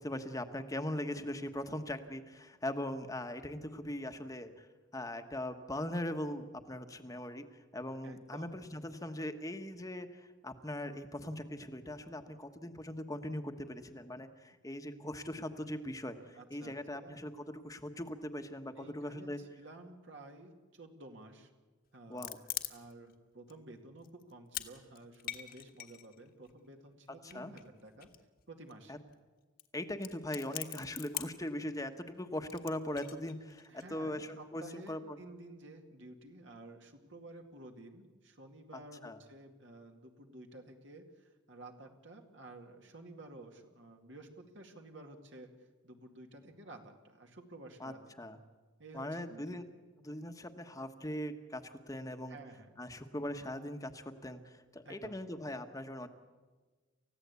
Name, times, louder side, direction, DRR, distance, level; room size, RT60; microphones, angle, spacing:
voice 1, 0.0-4.7 4.9-7.5 7.7-19.4 22.1-22.4 27.3-27.5 28.9-29.0 29.7-35.2 39.0-39.2 47.8-48.4 48.9-49.6 50.0-52.4 52.8-56.1, left 1 dB, 15° left, 8 dB, 1.2 m, -40 dB
voice 2, 8.0-8.5 16.4-17.2 18.8-21.5 21.9-22.2 22.7-28.1 28.5-29.0 33.7-48.0 48.8-49.6 52.3-52.7 54.8-55.2, right 2 dB, 60° right, 3 dB, 2.2 m, -52 dB
sound 1, 21.9-23.1 23.5-23.6 24.0-24.7 24.9-26.5 27.3-28.4 28.7-28.8 29.0-29.1 29.6-29.7 29.9-31.5 32.5-33.8, left 12 dB, 45° left, 1.5 m, -42 dB
29.0 x 15.5 x 8.3 m, 1.3 s
head